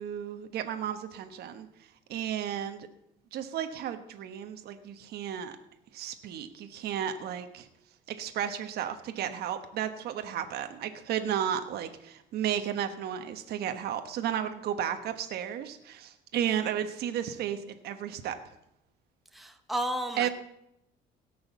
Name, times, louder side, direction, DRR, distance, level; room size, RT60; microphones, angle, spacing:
voice 1, 0.0-1.7 2.1-2.9 3.3-5.6 5.9-7.7 8.1-18.4 20.2-20.3, right 9 dB, 70° right, 7 dB, 1.3 m, -33 dB
voice 2, 19.3-20.3, right 1 dB, ahead, 5 dB, 1.1 m, -33 dB
17.5 x 6.3 x 7.3 m, 0.81 s
cardioid pair, 110°, 17 cm